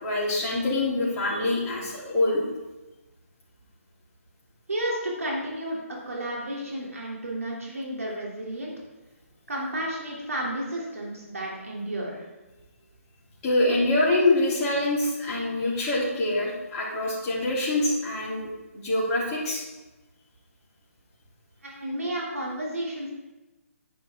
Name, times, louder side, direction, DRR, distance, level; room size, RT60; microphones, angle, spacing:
voice 1, 0.0-2.4 13.4-19.6, left 2 dB, 20° left, -6 dB, 3.2 m, -25 dB
voice 2, 4.7-8.7 9.5-12.2 21.6-23.1, right 1 dB, 70° right, -3 dB, 3.1 m, -32 dB
9.9 x 9.4 x 3.7 m, 1.1 s
figure-of-eight pair, 140°, 8 cm